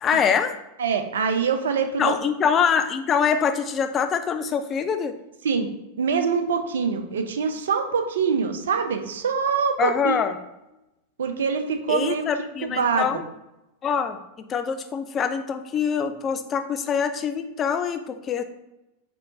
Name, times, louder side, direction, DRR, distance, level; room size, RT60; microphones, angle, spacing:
voice 1, 0.0-0.6 2.0-5.1 9.8-10.4 11.9-13.3 13.8-14.2 14.5-18.4, left 7 dB, 25° left, 9 dB, 0.3 m, -24 dB
voice 2, 0.8-2.1 5.4-5.7 6.0-10.2 11.2-12.2 12.6-13.1, right 6 dB, 65° right, 6 dB, 0.4 m, -24 dB
4.4 x 3.1 x 2.6 m, 0.91 s
figure-of-eight pair, 90°, 0 cm